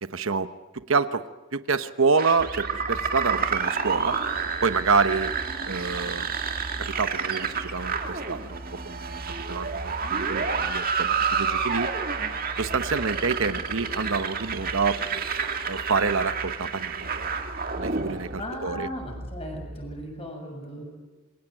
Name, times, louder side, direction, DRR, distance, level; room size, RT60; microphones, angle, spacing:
voice 1, 0.0-0.5 0.7-1.2 1.5-4.2 4.6-5.3 5.7-6.3 6.8-9.2 9.5-11.9 12.6-15.0 15.6-17.1 17.7-18.9, right 4 dB, 75° right, 11 dB, 1.0 m, -27 dB
sound 1, 2.2-18.5, right 5 dB, 45° right, 2.1 m, -29 dB
sound 2, 2.4-20.1, right 1 dB, 60° right, 2.7 m, -42 dB
voice 2, 18.4-20.9, equal, 30° left, 3 dB, 7.1 m, -36 dB
27.5 x 23.5 x 9.0 m, 1.2 s
head